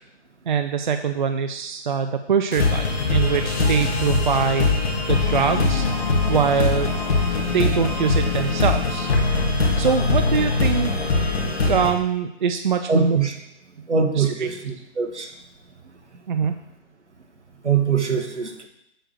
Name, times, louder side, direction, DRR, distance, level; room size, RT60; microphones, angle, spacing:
voice 1, 0.5-4.8 5.1-5.8 6.3-7.0 7.5-9.1 9.8-10.9 11.7-13.2 14.2-14.3 16.3-16.6, right 6 dB, 45° right, 8 dB, 0.5 m, -23 dB
sound 1, 2.5-4.8, left 5 dB, 10° left, 0.5 m, -33 dB
sound 2, 2.6-11.9, left 3 dB, 60° left, 2.0 m, -22 dB
voice 2, 12.9-13.4 13.9-15.3 17.6-18.7, right 6 dB, 75° right, 5 dB, 1.6 m, -22 dB
7.6 x 4.6 x 6.6 m, 0.82 s
figure-of-eight pair, 135°, 35 cm